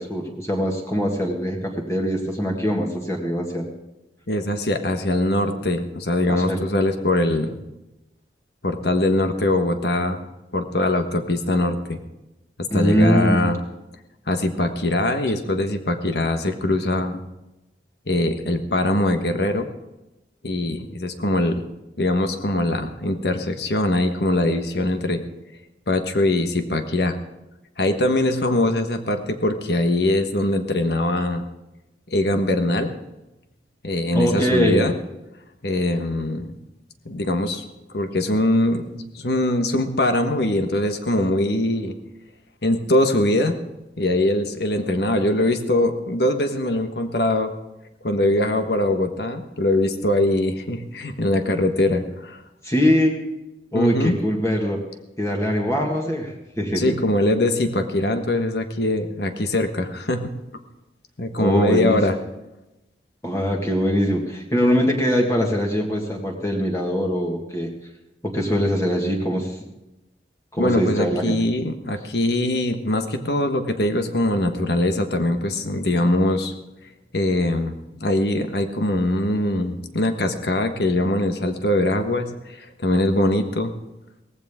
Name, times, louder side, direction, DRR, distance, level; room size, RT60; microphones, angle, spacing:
voice 1, 0.0-3.7 6.3-6.6 12.7-13.5 34.1-34.9 52.6-53.2 53.7-54.8 55.2-57.0 61.4-62.0 63.2-67.7 68.2-69.6 70.5-71.4, equal, 15° left, 0 dB, 1.8 m, -22 dB
voice 2, 4.3-7.6 8.6-10.2 10.5-12.0 12.7-13.6 14.3-17.2 18.1-19.7 20.4-21.6 22.0-25.2 25.9-27.2 27.8-31.4 32.1-32.9 33.8-34.9 35.6-36.5 37.0-37.6 37.9-41.9 42.6-43.6 44.0-47.5 48.0-52.4 53.7-54.2 56.7-60.3 61.2-62.1 70.6-76.5 77.1-82.3 82.6-83.7, left 1 dB, 70° left, 7 dB, 1.4 m, -22 dB
18.0 x 15.0 x 3.7 m, 0.97 s
head